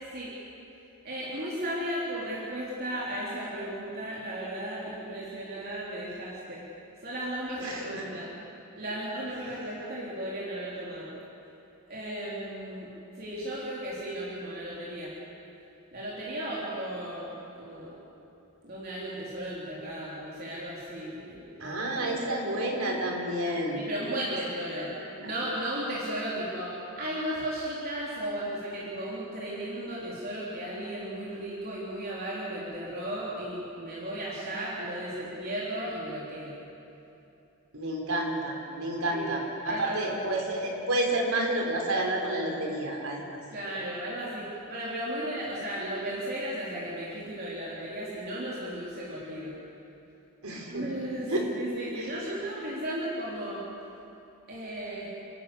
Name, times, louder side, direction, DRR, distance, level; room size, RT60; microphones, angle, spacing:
voice 1, 1.0-6.6 7.0-8.3 8.8-11.1 11.9-15.2 15.9-17.3 17.6-17.9 18.6-22.3 23.8-24.9 25.2-36.6 39.1-39.4 39.7-40.3 43.5-49.6 50.7-53.6 54.5-55.1, right 1 dB, 45° right, -6 dB, 3.6 m, -35 dB
voice 2, 7.6-8.0 21.6-23.8 25.2-25.3 37.7-39.4 39.6-43.4 50.4-50.8 51.3-51.4 51.9-52.1, right 1 dB, 80° right, 1 dB, 4.3 m, -30 dB
29.5 x 13.0 x 8.4 m, 2.8 s
head